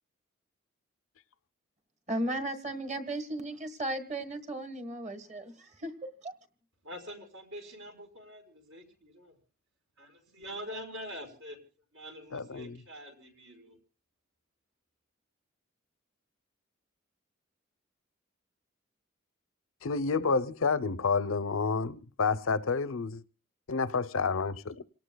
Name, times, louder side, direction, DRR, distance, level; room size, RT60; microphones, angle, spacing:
voice 1, 2.1-5.9 6.2-6.3, right 1 dB, 35° right, 1.6 m, -35 dB
voice 2, 6.8-9.4 10.0-11.6 11.9-13.8, equal, 75° right, 4.7 m, -45 dB
voice 3, 12.3-12.8 19.8-23.2 23.7-24.8, left 4 dB, 85° left, 0.7 m, -29 dB
27.5 x 18.0 x 2.3 m
head